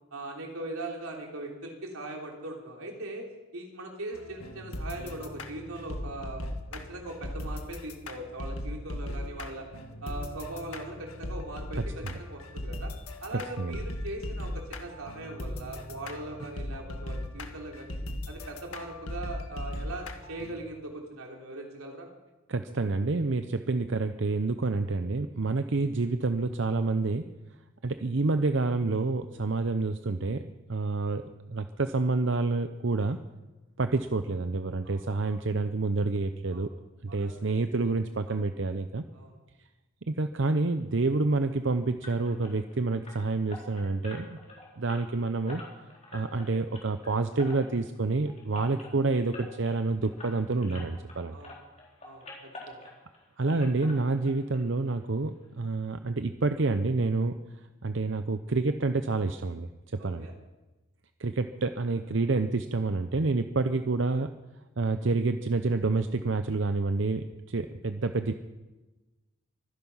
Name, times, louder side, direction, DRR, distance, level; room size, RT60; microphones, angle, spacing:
voice 1, 0.1-6.4 6.7-9.7 10.0-12.9 13.2-18.0 18.3-22.1 34.8-35.4 36.5-36.7 37.1-37.6 38.3-38.4 39.1-39.3 51.3-51.6 52.0-52.9 60.0-60.3, right 2 dB, 85° right, 1 dB, 3.5 m, -40 dB
sound 1, 4.1-20.6, left 1 dB, 85° left, 1.7 m, -38 dB
voice 2, 13.3-13.8 22.5-27.2 27.8-30.4 30.7-31.2 31.5-33.2 33.8-36.7 37.0-39.0 40.1-44.4 44.8-45.6 46.1-51.3 53.4-57.4 57.8-59.7 60.0-60.3 61.2-64.3 64.8-68.3, right 3 dB, 60° right, 9 dB, 0.7 m, -28 dB
sound 2, 42.0-51.2 51.4-53.2 53.5-54.6 54.9-55.0 55.4-55.5 55.8-55.9, left 2 dB, 30° left, 4.3 m, -47 dB
24.5 x 10.5 x 5.6 m, 1.1 s
head